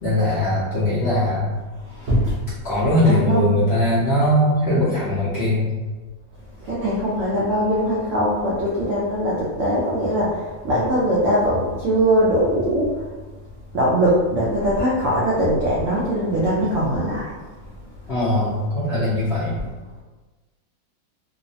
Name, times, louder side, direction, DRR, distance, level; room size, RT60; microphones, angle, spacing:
voice 1, 0.0-1.5 2.4-5.7 18.1-19.6, left 1 dB, 75° left, -9 dB, 0.5 m, -20 dB
voice 2, 1.9-2.4 3.0-3.5 6.6-13.0 13.7-17.3 19.6-19.7, equal, 85° right, -6 dB, 0.6 m, -21 dB
3.0 x 2.0 x 2.6 m, 1.3 s
omnidirectional pair, 2.0 m